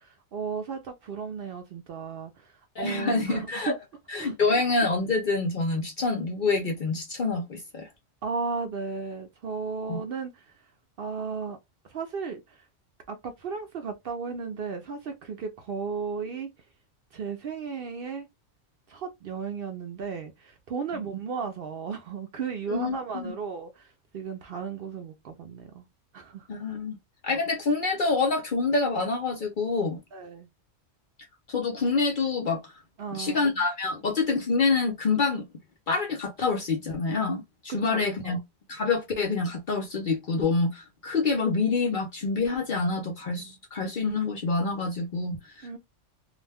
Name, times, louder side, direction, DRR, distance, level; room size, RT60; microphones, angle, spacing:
voice 1, 0.0-3.7 4.2-4.3 8.2-10.6 11.0-11.6 11.8-12.7 13.1-16.5 17.1-18.3 18.9-25.9 26.1-26.5 27.3-27.4 30.1-30.5 33.0-33.6 37.8-38.4 42.9-43.1 43.4-43.6 45.6-45.8, right 5 dB, 60° right, 0.6 m, -35 dB
voice 2, 2.8-3.7 4.1-7.9 9.9-10.0 22.7-23.3 26.5-27.0 27.2-30.0 31.5-32.7 33.1-35.4 35.9-38.4 38.7-45.8, left 4 dB, 55° left, 0.6 m, -27 dB
2.4 x 2.1 x 3.3 m
omnidirectional pair, 1.3 m